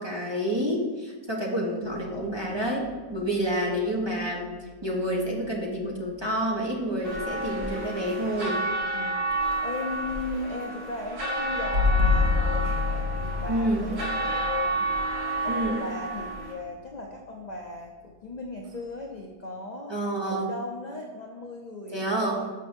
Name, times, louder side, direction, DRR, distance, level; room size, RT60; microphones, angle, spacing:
voice 1, 0.0-4.5 4.8-8.6 13.5-13.9 15.5-15.8 19.9-20.5 21.9-22.4, right 1 dB, 20° right, -3 dB, 1.0 m, -28 dB
sound 1, 2.5-3.4 5.2-5.3 11.7-16.4, left 4 dB, 50° right, 1.0 m, -27 dB
sound 2, 7.0-16.5, right 2 dB, 80° right, 2.4 m, -30 dB
voice 2, 8.9-20.0 20.3-22.5, left 2 dB, 45° left, 0 dB, 0.6 m, -37 dB
6.7 x 5.2 x 5.1 m, 1.3 s
omnidirectional pair, 1.6 m